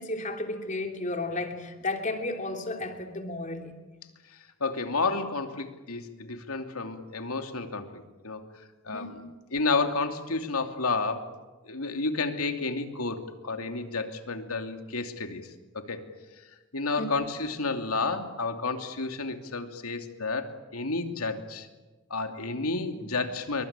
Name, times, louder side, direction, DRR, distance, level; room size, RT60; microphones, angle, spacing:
voice 1, 0.0-3.7 8.9-9.2 17.0-17.1, left 2 dB, 35° left, 3.2 m, -33 dB
voice 2, 4.6-8.5 8.8-9.2 9.5-11.3 11.7-15.5 15.7-16.0 16.7-21.7 22.1-23.6, left 3 dB, 85° left, 2.8 m, -31 dB
27.0 x 23.5 x 9.0 m
head